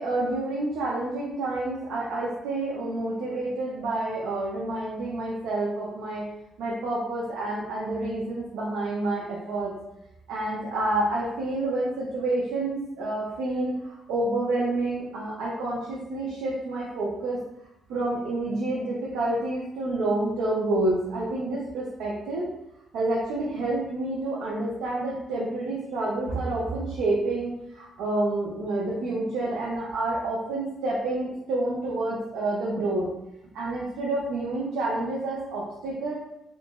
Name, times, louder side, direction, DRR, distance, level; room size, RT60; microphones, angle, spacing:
voice 1, 0.0-6.3 6.6-9.7 10.3-17.4 17.9-22.5 22.9-33.1 33.5-36.1, right 2 dB, 90° right, -5 dB, 0.7 m, -28 dB
2.9 x 2.5 x 3.5 m, 0.84 s
cardioid pair, 90°, 0 cm